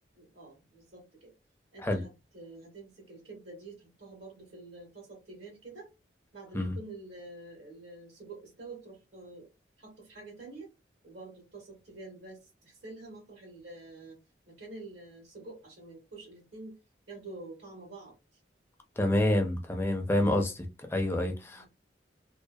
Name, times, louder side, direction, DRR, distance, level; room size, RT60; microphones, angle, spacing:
voice 1, 0.1-1.3 1.7-5.9 6.3-9.5 9.8-10.7 11.0-14.2 14.5-16.8 17.1-18.1 21.4-21.7, right 2 dB, 85° right, 1.2 m, -47 dB
voice 2, 19.0-21.7, left 1 dB, 15° left, 0.4 m, -28 dB
2.6 x 2.1 x 2.2 m
head